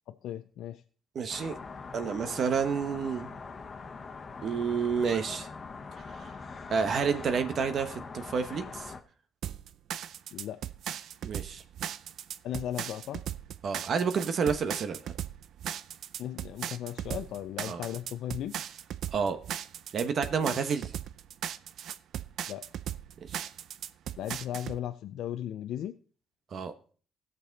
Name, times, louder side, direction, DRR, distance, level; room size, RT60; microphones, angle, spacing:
voice 1, 0.1-0.8 10.3-10.6 12.4-13.2 16.2-18.6 22.5-22.6 24.2-26.0, left 11 dB, 80° left, 8 dB, 0.5 m, -36 dB
voice 2, 1.1-1.6 1.9-3.4 4.4-5.5 6.1-6.3 6.7-8.9 11.2-11.6 13.6-15.1 17.6-17.8 19.1-19.4 19.9-20.9 23.3-23.4 26.5-26.7, right 6 dB, 60° right, 8 dB, 1.1 m, -29 dB
sound 1, 1.3-9.0, left 4 dB, 40° left, 1.2 m, -43 dB
sound 2, 9.4-24.8, right 10 dB, 75° right, 0.4 m, -37 dB
16.5 x 6.8 x 4.0 m, 0.42 s
cardioid pair, 90°, 0 cm